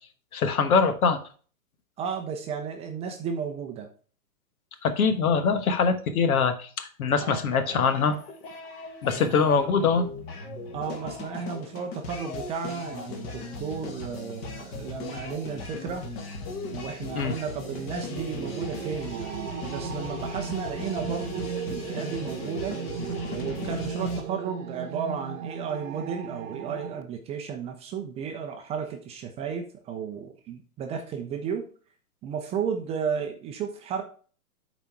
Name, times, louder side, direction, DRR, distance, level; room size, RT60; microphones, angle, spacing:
voice 1, 0.3-1.2 4.8-8.2 9.0-10.1 17.1-17.4, left 5 dB, 70° left, 9 dB, 1.3 m, -23 dB
voice 2, 2.0-3.9 7.2-7.8 8.1-8.2 9.2-9.7 10.7-16.1 16.7-22.8 23.3-31.7 32.2-34.0, right 6 dB, 15° right, 4 dB, 0.5 m, -33 dB
sound 1, 7.2-24.2, left 3 dB, 40° left, 1.8 m, -38 dB
sound 2, 16.8-27.0, right 7 dB, 60° right, 1.0 m, -36 dB
8.3 x 4.2 x 4.5 m, 0.41 s
hypercardioid pair, 130°, 45 cm